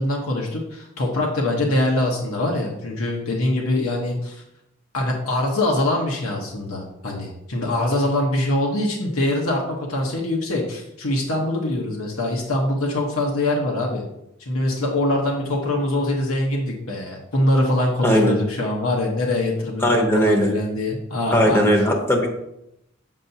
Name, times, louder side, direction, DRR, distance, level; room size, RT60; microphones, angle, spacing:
voice 1, 0.0-4.4 4.9-14.0 14.4-21.6, left 1 dB, 85° left, -1 dB, 1.0 m, -23 dB
voice 2, 18.0-18.4 19.8-20.5 21.3-22.3, equal, 10° left, 1 dB, 0.7 m, -18 dB
7.4 x 5.6 x 2.7 m, 0.84 s
head